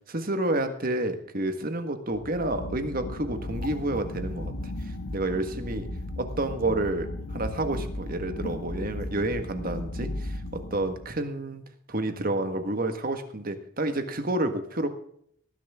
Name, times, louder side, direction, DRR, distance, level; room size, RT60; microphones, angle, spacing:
voice 1, 0.1-4.5 5.1-5.9 6.2-7.1 7.3-10.1 10.5-11.6 11.9-14.9, right 2 dB, 40° right, 7 dB, 1.6 m, -29 dB
sound 1, 2.1-11.2, left 1 dB, 75° left, 1.3 m, -36 dB
18.5 x 10.5 x 3.6 m, 0.66 s
head